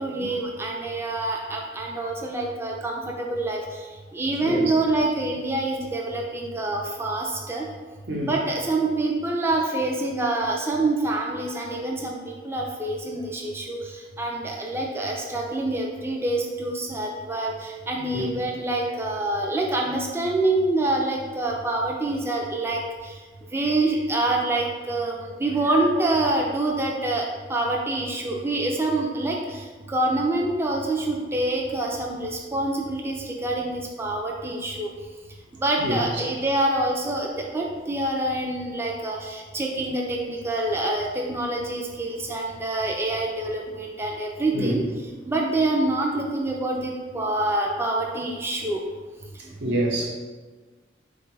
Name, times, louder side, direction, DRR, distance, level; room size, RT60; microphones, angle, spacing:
voice 1, 0.0-3.0 3.3-3.6 4.1-7.7 8.2-13.8 14.2-22.8 23.5-27.2 27.5-29.4 29.9-33.2 33.4-34.9 35.6-44.8 45.3-48.8, right 2 dB, 15° right, -1 dB, 0.3 m, -26 dB
voice 2, 49.6-50.1, right 1 dB, 85° right, -2 dB, 0.9 m, -26 dB
3.7 x 2.4 x 4.5 m, 1.4 s
head